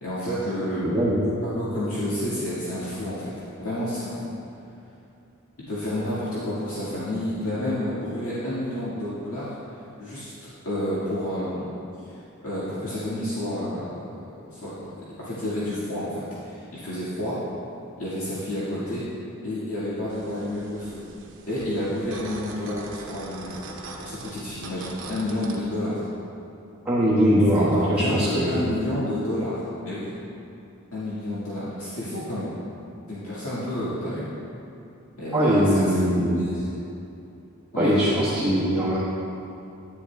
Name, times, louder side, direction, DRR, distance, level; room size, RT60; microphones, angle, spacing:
voice 1, 0.0-1.1 1.4-3.3 3.6-4.2 5.7-9.5 10.0-10.3 10.6-11.8 12.1-14.0 14.5-14.9 15.2-17.4 18.0-19.0 19.4-21.0 21.5-23.5 24.0-26.0 27.6-30.1 30.9-32.5 33.1-34.3 35.2-36.6 37.7-37.9, left 1 dB, 70° left, -12 dB, 2.0 m, -30 dB
voice 2, 0.8-1.2 26.8-28.6 35.3-36.4 37.8-39.0, equal, 10° right, -12 dB, 1.4 m, -21 dB
sound 1, 20.1-25.6, right 3 dB, 60° right, 0.8 m, -42 dB
10.5 x 10.0 x 2.4 m, 2.8 s
head